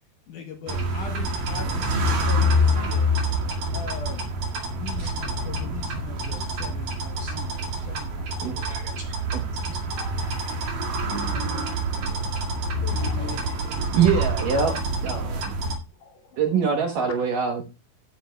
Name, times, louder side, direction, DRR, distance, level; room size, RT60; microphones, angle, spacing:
voice 1, 0.3-3.1 3.7-4.3 4.7-8.3, left 6 dB, 90° left, 3 dB, 1.7 m, -40 dB
sound 1, 0.7-15.8, equal, 55° right, 3.3 m, -26 dB
voice 2, 7.8-9.2 9.8-12.2 12.5-14.0 14.3-14.6 16.0-16.9 17.2-17.3, left 3 dB, 45° left, 1 dB, 3.0 m, -43 dB
voice 3, 8.4-8.9 9.3-9.4 12.8-12.9 13.9-14.7 15.0-15.5 16.4-17.6, right 6 dB, 75° right, 3 dB, 1.9 m, -24 dB
16.0 x 10.0 x 2.3 m, 0.29 s
omnidirectional pair, 5.4 m